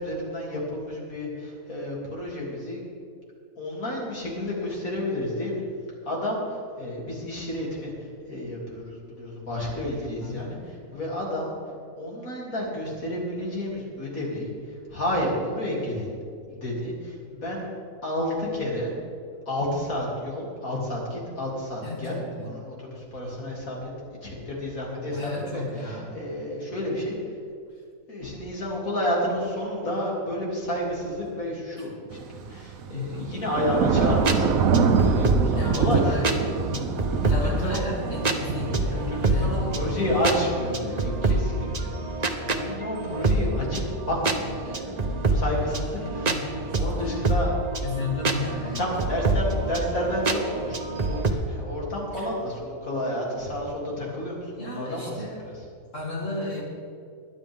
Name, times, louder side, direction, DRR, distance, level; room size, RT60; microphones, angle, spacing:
voice 1, 0.0-2.8 3.6-5.6 6.0-11.6 12.0-16.1 16.5-17.7 18.0-18.9 19.5-22.2 22.4-23.9 24.2-27.2 28.1-36.3 37.1-37.8 38.9-41.9 42.4-47.5 48.8-55.5, left 1 dB, 85° left, -3 dB, 3.4 m, -30 dB
voice 2, 10.2-10.7 21.8-22.5 25.1-26.2 27.7-27.8 32.9-33.4 35.5-39.8 45.7-46.8 47.8-48.9 52.1-52.3 54.6-55.5 55.9-56.6, left 3 dB, 65° left, -4 dB, 2.5 m, -34 dB
Thunder / Rain, 32.1-40.4, right 6 dB, 85° right, 1.2 m, -26 dB
sound 1, 33.9-51.3, right 2 dB, 35° right, 0.8 m, -27 dB
22.0 x 9.8 x 3.6 m, 2.3 s
omnidirectional pair, 1.4 m